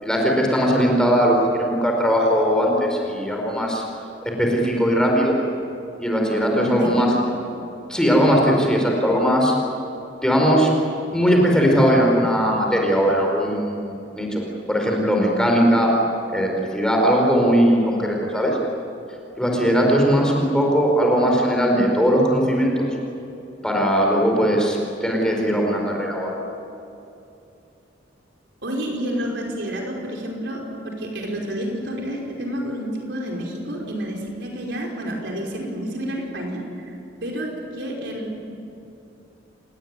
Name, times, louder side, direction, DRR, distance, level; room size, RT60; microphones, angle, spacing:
voice 1, 0.0-3.8 4.4-5.4 6.0-7.1 7.9-9.5 10.2-10.7 11.1-14.4 14.7-15.9 16.3-18.6 19.4-22.9 23.6-26.3, equal, 5° left, 0 dB, 4.6 m, -19 dB
voice 2, 6.5-7.2 28.6-36.9 37.2-38.5, equal, 60° right, 0 dB, 5.3 m, -29 dB
29.0 x 19.5 x 9.6 m, 2.8 s
head